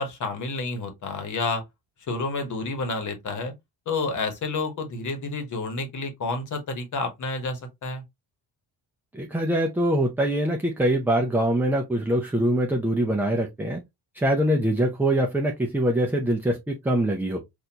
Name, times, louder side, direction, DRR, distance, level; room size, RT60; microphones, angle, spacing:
voice 1, 0.0-1.6 2.1-3.5 3.9-8.0, left 3 dB, 50° left, 1.2 m, -29 dB
voice 2, 9.1-13.8 14.1-17.4, right 1 dB, 5° right, 0.4 m, -23 dB
4.2 x 2.6 x 2.7 m
cardioid pair, 130°, 40 cm